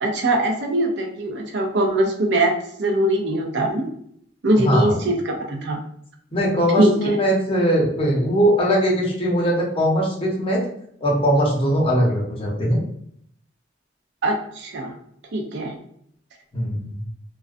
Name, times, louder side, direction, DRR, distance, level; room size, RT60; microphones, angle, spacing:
voice 1, 0.0-2.5 2.8-3.8 4.4-5.8 6.8-7.2 14.2-14.9 15.3-15.7, right 1 dB, 65° right, 2 dB, 0.5 m, -21 dB
voice 2, 4.6-5.0 6.3-10.6 11.0-12.8 16.5-17.0, equal, 30° left, -2 dB, 0.7 m, -20 dB
2.3 x 2.2 x 2.4 m, 0.67 s
head